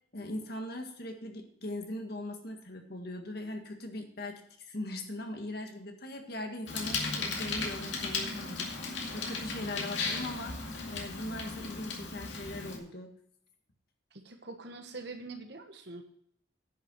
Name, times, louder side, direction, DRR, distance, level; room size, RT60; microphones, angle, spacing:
voice 1, 0.1-4.4 4.7-13.1, left 1 dB, 55° left, 4 dB, 1.7 m, -40 dB
Bicycle, 6.7-12.8, left 4 dB, 70° left, 2.2 m, -36 dB
voice 2, 14.1-16.0, right 3 dB, 60° right, 5 dB, 1.4 m, -44 dB
10.0 x 7.0 x 6.2 m, 0.68 s
head